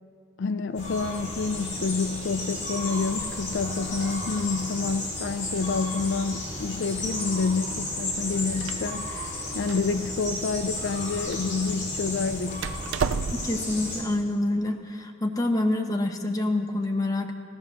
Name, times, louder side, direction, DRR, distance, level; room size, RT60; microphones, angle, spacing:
voice 1, 0.4-12.7, left 4 dB, 65° left, 10 dB, 0.4 m, -28 dB
sound 1, 0.7-14.0, left 1 dB, 40° left, 5.3 m, -33 dB
Door, 8.1-13.7, right 6 dB, 75° right, 0.4 m, -35 dB
voice 2, 13.3-17.3, left 1 dB, 20° left, 2 dB, 1.1 m, -27 dB
15.5 x 13.0 x 6.6 m, 2.3 s
head